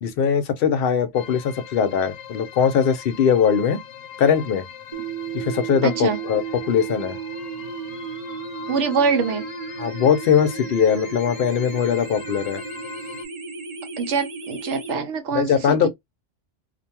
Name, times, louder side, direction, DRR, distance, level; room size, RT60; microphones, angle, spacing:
voice 1, 0.0-3.8 4.2-4.6 5.3-7.2 9.8-12.6 15.3-15.9, left 7 dB, 65° left, 0.7 m, -21 dB
sound 1, 1.1-13.3, left 9 dB, 85° left, 0.9 m, -40 dB
sound 2, 4.9-14.9, right 6 dB, 45° right, 0.6 m, -34 dB
voice 2, 5.8-6.2 8.7-9.5 14.0-15.9, right 5 dB, 85° right, 1.1 m, -24 dB
2.5 x 2.2 x 2.7 m
omnidirectional pair, 1.2 m